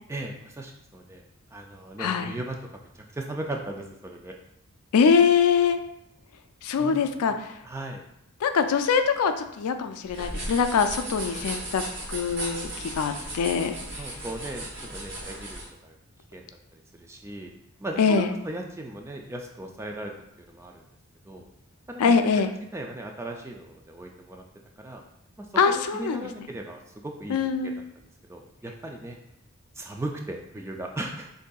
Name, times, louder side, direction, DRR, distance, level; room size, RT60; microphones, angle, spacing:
voice 1, 0.1-1.2 1.5-4.4 6.8-7.4 7.6-8.0 14.0-16.0 16.3-17.5 17.8-20.1 20.5-20.8 21.3-21.5 21.9-22.1 22.7-24.4 24.8-25.0 25.4-27.8 28.2-29.2 29.8-31.3, right 1 dB, 10° right, 2 dB, 0.3 m, -37 dB
voice 2, 2.0-2.3 4.9-5.8 6.6-7.6 8.4-11.8 12.1-13.8 18.0-18.3 22.0-22.6 25.6-26.5 27.3-27.8, left 6 dB, 85° left, 8 dB, 0.4 m, -23 dB
sound 1, 10.1-15.7, right 1 dB, 50° right, 1.2 m, -36 dB
6.4 x 2.7 x 2.3 m, 0.82 s
head